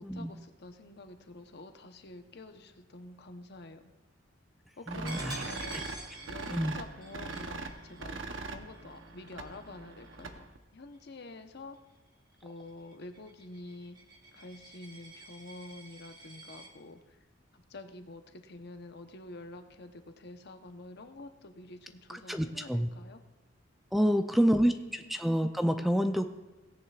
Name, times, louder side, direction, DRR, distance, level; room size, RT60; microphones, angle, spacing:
voice 1, 0.0-3.9 4.8-10.5 10.7-11.8 12.4-14.0 14.3-17.2 17.5-23.2 24.0-25.2, left 2 dB, 60° left, 7 dB, 0.9 m, -48 dB
voice 2, 4.9-5.4 5.7-5.8 6.5-6.8 22.1-22.9 23.9-26.2, equal, ahead, 7 dB, 0.4 m, -28 dB
sound 1, 4.9-10.6, right 3 dB, 80° right, 0.9 m, -42 dB
Coin (dropping), 5.1-10.5 10.9-11.2 11.6-16.7, right 1 dB, 20° right, 1.5 m, -49 dB
17.5 x 9.9 x 2.4 m, 1.2 s
head